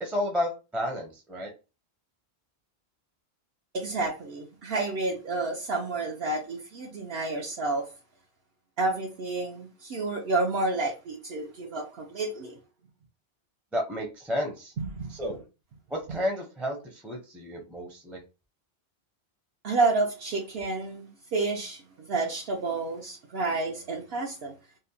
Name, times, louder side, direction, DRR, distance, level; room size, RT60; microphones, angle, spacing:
voice 1, 0.0-1.5 13.7-14.7 15.1-15.4 15.9-18.2, left 1 dB, ahead, 0.5 m, -31 dB
voice 2, 3.7-7.9 8.8-12.6 14.8-15.1 19.6-24.5, right 3 dB, 70° right, 0.8 m, -30 dB
2.7 x 2.1 x 2.7 m
omnidirectional pair, 1.1 m